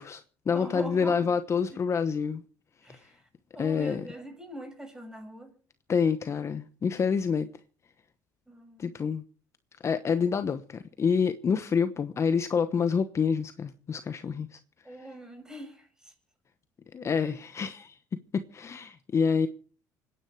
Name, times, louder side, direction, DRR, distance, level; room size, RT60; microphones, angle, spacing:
voice 1, 0.0-2.4 3.6-4.1 5.9-7.5 8.8-9.2 9.8-14.5 16.9-17.9 18.5-19.5, left 6 dB, 35° left, 1.0 m, -27 dB
voice 2, 0.5-1.4 1.7-1.8 2.8-3.2 3.5-5.5 8.5-8.9 14.8-16.1 17.2-17.3, equal, 10° right, 7.0 m, -42 dB
25.5 x 10.5 x 4.7 m
supercardioid pair, 85°, 8 cm